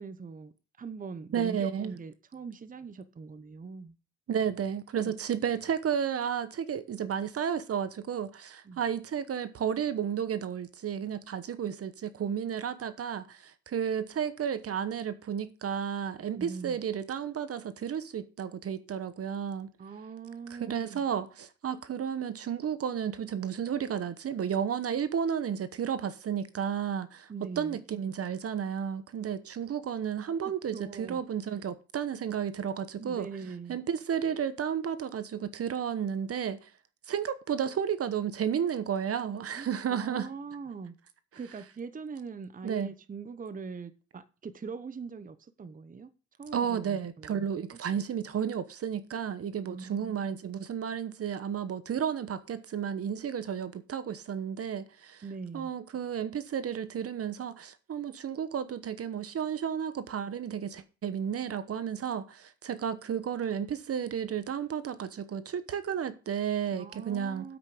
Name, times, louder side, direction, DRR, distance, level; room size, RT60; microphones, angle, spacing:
voice 1, 0.0-3.9 5.0-5.2 8.6-8.8 16.3-16.8 19.8-21.0 27.3-27.8 30.7-31.2 33.0-33.8 39.5-40.9 41.4-46.1 46.4-47.4 47.7-47.8 49.7-50.4 55.2-55.7 66.7-67.6, right 5 dB, 25° right, 0.9 m, -42 dB
voice 2, 1.3-1.9 4.3-19.7 20.5-27.3 27.6-33.3 33.7-36.7 37.1-40.3 42.6-42.9 46.5-55.2 55.5-67.6, right 8 dB, 50° right, 1.0 m, -32 dB
8.2 x 6.1 x 6.8 m
cardioid pair, 90°, 30 cm